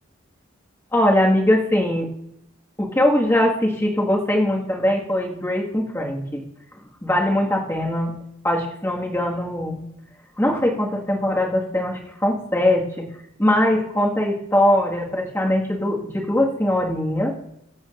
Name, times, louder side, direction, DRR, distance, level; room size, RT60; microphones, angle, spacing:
voice 1, 0.9-2.1 2.8-6.4 7.0-8.1 8.4-9.8 10.4-13.1 13.4-17.4, left 1 dB, 10° left, -1 dB, 1.8 m, -21 dB
23.5 x 8.0 x 2.5 m, 0.78 s
head